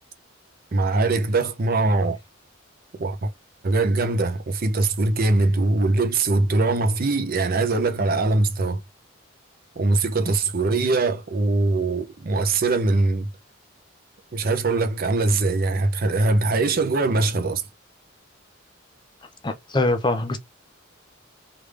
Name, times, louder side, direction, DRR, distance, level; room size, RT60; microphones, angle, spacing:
voice 1, 0.7-2.2 3.0-3.3 3.6-8.8 9.8-13.3 14.3-17.6, right 2 dB, 45° right, 0.6 m, -22 dB
voice 2, 19.4-20.4, left 2 dB, 25° left, 0.6 m, -23 dB
3.3 x 2.5 x 3.3 m
head